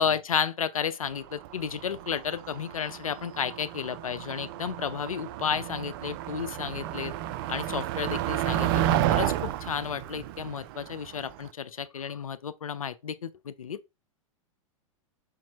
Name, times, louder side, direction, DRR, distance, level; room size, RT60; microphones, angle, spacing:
voice 1, 0.0-7.1 7.5-8.8 9.1-13.8, left 7 dB, 80° left, 0.4 m, -32 dB
Motor vehicle (road), 1.1-11.5, right 12 dB, 45° right, 0.4 m, -31 dB
4.6 x 4.1 x 2.4 m
figure-of-eight pair, 100°, 18 cm